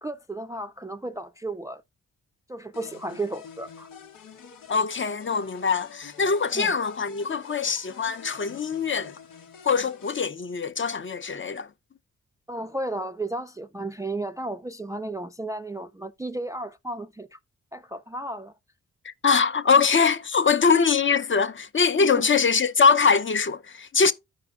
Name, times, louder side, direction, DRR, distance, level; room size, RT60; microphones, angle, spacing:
voice 1, 0.0-1.8 2.5-3.9 6.5-6.8 12.5-17.4 17.7-18.5 22.0-22.1, right 2 dB, 10° right, 0.3 m, -33 dB
sound 1, 2.7-10.2, left 7 dB, 90° left, 1.1 m, -47 dB
voice 2, 4.7-9.1 9.6-11.7 19.0-24.1, left 5 dB, 40° left, 0.7 m, -23 dB
14.0 x 4.8 x 2.4 m
cardioid pair, 65°, 32 cm